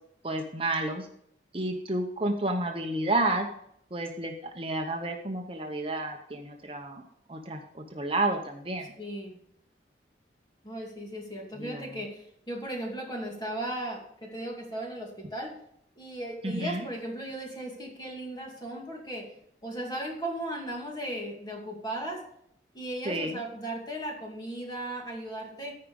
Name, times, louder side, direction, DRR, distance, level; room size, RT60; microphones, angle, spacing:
voice 1, 0.2-1.1 1.5-3.5 3.9-7.0 7.3-8.8 11.6-11.8 16.4-16.8 23.1-23.4, right 2 dB, 30° right, 3 dB, 0.9 m, -30 dB
voice 2, 9.0-9.3 10.6-15.6 16.0-19.3 19.6-22.2 22.7-25.7, right 1 dB, 25° left, 0 dB, 2.3 m, -36 dB
14.0 x 5.1 x 5.3 m, 0.71 s
head